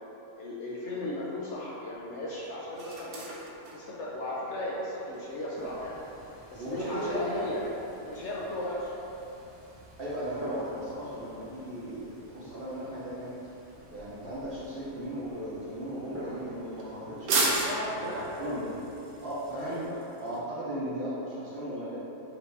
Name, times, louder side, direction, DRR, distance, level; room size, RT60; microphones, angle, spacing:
voice 1, 0.4-3.3 3.7-6.0 6.5-7.6 8.0-8.9 17.6-18.6 19.5-20.0, left 1 dB, 65° left, -6 dB, 0.7 m, -36 dB
sound 1, 0.8-20.4, right 3 dB, 90° right, 1.1 m, -39 dB
sound 2, 5.6-19.9, equal, 15° right, 0.5 m, -48 dB
voice 2, 6.5-7.5 10.0-13.3 13.9-18.7 19.2-19.8 20.2-22.0, right 1 dB, 50° right, -9 dB, 0.8 m, -36 dB
4.7 x 2.6 x 3.3 m, 3.0 s
omnidirectional pair, 1.5 m